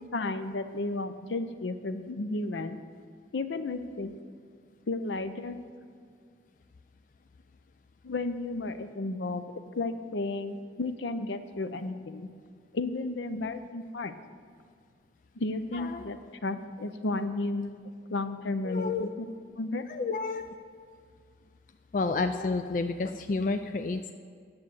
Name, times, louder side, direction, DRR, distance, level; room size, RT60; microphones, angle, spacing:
voice 1, 0.1-2.8 3.3-4.1 4.9-5.6 8.0-9.5 9.7-12.3 12.7-14.1 15.4-17.8 18.1-19.3 19.6-19.8, left 2 dB, 80° left, 10 dB, 0.6 m, -33 dB
voice 2, 15.7-16.1 18.6-19.1 19.9-20.4 21.9-24.1, left 3 dB, 45° left, 8 dB, 0.3 m, -30 dB
9.7 x 7.1 x 7.9 m, 2.1 s
head